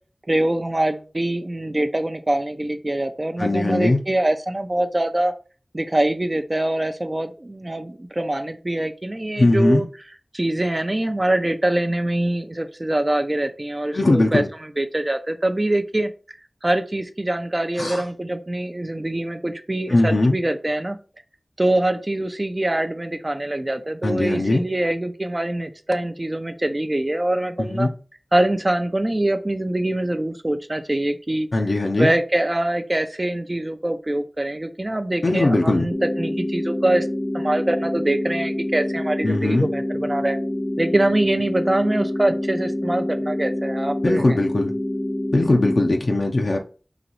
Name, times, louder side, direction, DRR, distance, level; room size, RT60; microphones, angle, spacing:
voice 1, 0.3-5.3 5.7-9.8 10.3-14.4 14.8-16.1 16.6-21.0 21.6-27.9 28.3-31.5 32.0-37.1 37.3-40.4 40.8-44.4, right 1 dB, 35° right, 7 dB, 0.5 m, -24 dB
voice 2, 3.4-4.0 9.4-9.8 13.9-14.5 17.8-18.0 19.9-20.4 24.0-24.6 27.7-27.9 31.5-32.1 35.2-35.9 39.2-39.7 44.0-44.7 45.3-46.6, left 2 dB, 75° left, 1 dB, 0.6 m, -19 dB
sound 1, 35.9-45.9, left 1 dB, 25° left, 0.3 m, -27 dB
3.9 x 3.0 x 3.0 m, 0.35 s
wide cardioid pair, 45°, 0 cm